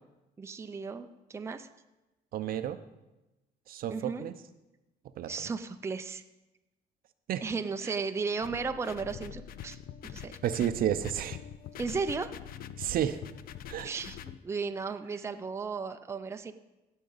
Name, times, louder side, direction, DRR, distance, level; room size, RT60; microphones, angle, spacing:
voice 1, 0.4-1.7 3.9-4.2 5.3-6.2 7.4-9.8 10.0-10.4 11.8-12.3 13.8-16.5, right 4 dB, 15° right, 7 dB, 0.5 m, -35 dB
voice 2, 2.3-2.8 3.7-4.3 5.2-5.5 7.3-7.4 7.8-7.9 10.4-11.4 12.8-13.2 13.7-13.9, right 10 dB, 60° right, 11 dB, 0.6 m, -31 dB
sound 1, 8.4-14.4, left 9 dB, 60° left, 0.5 m, -44 dB
16.5 x 6.3 x 4.0 m, 1.0 s
cardioid pair, 110°, 17 cm